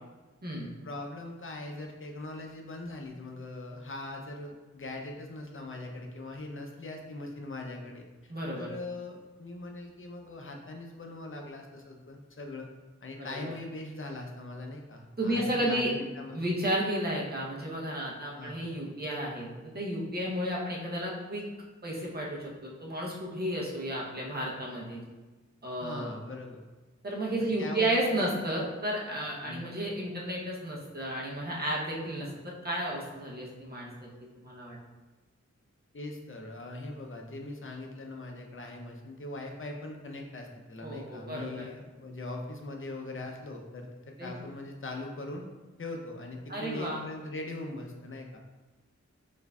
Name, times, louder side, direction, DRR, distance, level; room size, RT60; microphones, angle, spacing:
voice 1, 0.8-12.7 13.0-16.4 18.4-18.6 25.8-26.6 27.4-28.3 29.5-29.7 35.9-43.9 44.2-45.4 45.8-48.4, left 2 dB, 45° left, 2 dB, 0.5 m, -41 dB
voice 2, 8.3-8.7 13.2-13.5 15.2-15.9 16.3-21.4 21.8-25.0 25.6-26.1 27.0-33.9 34.4-34.8 40.8-41.7 44.2-44.3 46.5-47.0, right 1 dB, 35° right, -4 dB, 0.8 m, -32 dB
4.4 x 2.6 x 2.3 m, 1.2 s
wide cardioid pair, 60°, 29 cm